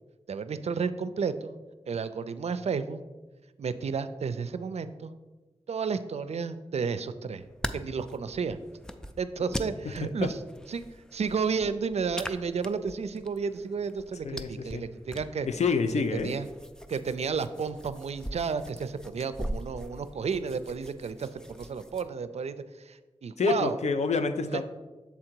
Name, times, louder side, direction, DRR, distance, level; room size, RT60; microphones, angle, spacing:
voice 1, 0.3-1.6 1.9-3.0 3.6-5.1 5.7-7.4 7.7-8.6 9.2-10.4 10.7-10.8 11.1-15.5 16.2-16.5 16.9-23.8 24.4-24.6, right 5 dB, 70° right, 12 dB, 0.4 m, -32 dB
sound 1, 7.3-22.0, equal, 5° left, 0.4 m, -42 dB
voice 2, 14.2-14.8 15.5-16.3 23.4-24.6, left 5 dB, 80° left, 9 dB, 0.5 m, -27 dB
7.1 x 3.8 x 4.5 m, 1.2 s
wide cardioid pair, 80°, 11 cm